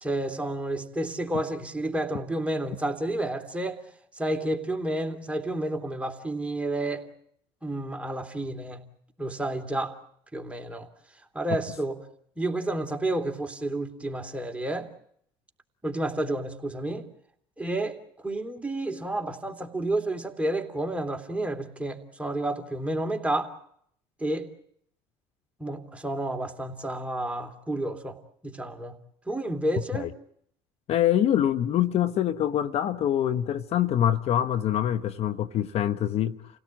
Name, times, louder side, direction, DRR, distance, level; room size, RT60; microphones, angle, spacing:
voice 1, 0.0-3.8 4.2-7.1 7.6-8.8 9.2-10.0 10.3-10.9 11.3-12.0 12.4-14.9 15.8-17.1 17.6-18.0 18.2-23.5 24.2-24.5 25.6-28.2 28.4-29.0 29.3-30.1, right 1 dB, 10° right, 2.9 m, -30 dB
voice 2, 30.9-36.4, left 11 dB, 55° left, 0.9 m, -25 dB
28.5 x 17.5 x 8.8 m
hypercardioid pair, 70°, 13 cm